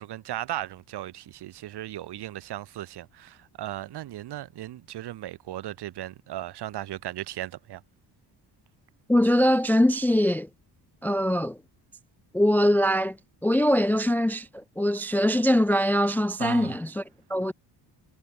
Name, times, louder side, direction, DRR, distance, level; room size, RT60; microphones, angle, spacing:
voice 1, 0.0-7.8 16.4-16.8, right 13 dB, 75° right, 3.9 m, -36 dB
voice 2, 9.1-10.5 11.0-11.6 12.3-13.2 13.4-17.0 17.3-17.5, equal, 5° left, 0.4 m, -22 dB
cardioid pair, 180°, 41 cm